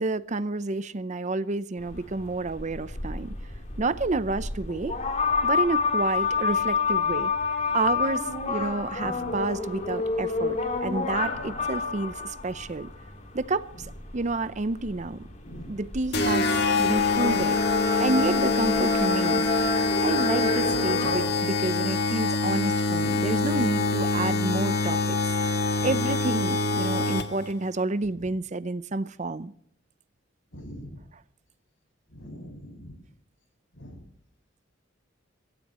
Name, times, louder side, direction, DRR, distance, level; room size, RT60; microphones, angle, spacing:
voice 1, 0.0-3.3 3.8-5.0 5.4-7.3 7.7-12.9 13.3-15.3 15.7-16.5 16.8-17.6 18.0-19.5 20.0-25.2 25.8-29.5, right 2 dB, 35° right, 0.6 m, -29 dB
sound 1, 1.8-21.2, left 4 dB, 35° left, 3.4 m, -29 dB
voice 2, 9.0-9.3 15.4-15.7 30.5-30.9 32.1-33.0 33.8-34.0, equal, 75° left, 7.2 m, -42 dB
sound 2, 16.1-27.5, left 3 dB, 55° left, 1.7 m, -25 dB
25.0 x 15.0 x 3.0 m
head